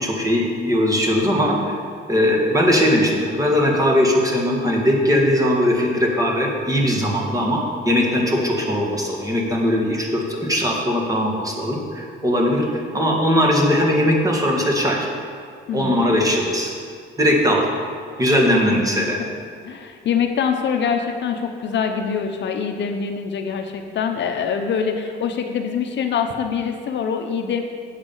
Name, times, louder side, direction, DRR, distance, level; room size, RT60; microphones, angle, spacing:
voice 1, 0.0-1.8 2.1-15.1 15.7-16.7 17.2-17.7 18.2-19.2, equal, 15° right, -1 dB, 1.8 m, -19 dB
voice 2, 15.7-16.1 19.0-19.3 19.6-27.6, left 6 dB, 65° left, 5 dB, 0.8 m, -24 dB
8.0 x 7.4 x 5.5 m, 2.3 s
cardioid pair, 90°, 20 cm